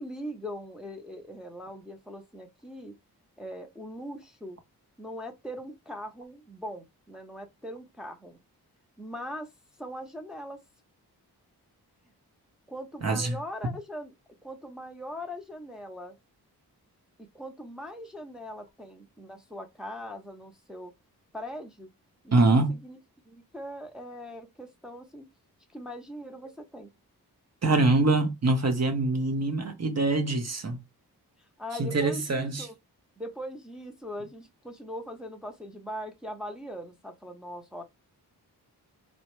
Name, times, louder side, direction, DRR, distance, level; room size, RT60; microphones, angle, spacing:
voice 1, 0.0-2.9 3.4-4.6 5.0-8.4 9.0-9.5 9.8-10.6 12.7-14.1 14.4-16.2 17.2-20.9 21.3-21.9 22.2-22.4 22.7-23.0 23.3-25.3 25.7-26.9 31.6-32.7 33.2-37.8, equal, ahead, 0.7 m, -40 dB
voice 2, 13.0-13.4 22.3-22.8 27.6-30.8 31.8-32.7, right 2 dB, 40° right, 0.8 m, -24 dB
2.8 x 2.1 x 3.1 m
cardioid pair, 45°, 40 cm